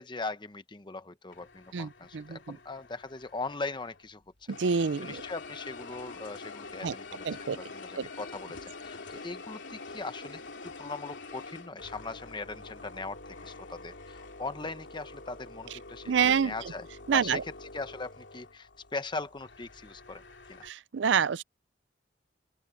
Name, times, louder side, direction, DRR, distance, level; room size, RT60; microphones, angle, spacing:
voice 1, 0.0-4.2 4.7-16.9 17.1-20.2 20.5-20.7, left 3 dB, 25° left, 0.9 m, -40 dB
sound 1, 1.3-4.1 4.5-20.7, left 3 dB, 75° left, 2.8 m, -46 dB
voice 2, 1.7-2.6 4.5-5.2 6.8-6.9 7.2-7.6 8.0-8.1 16.1-16.5 17.1-17.4 20.6-21.4, right 6 dB, 75° right, 0.5 m, -27 dB
open air
head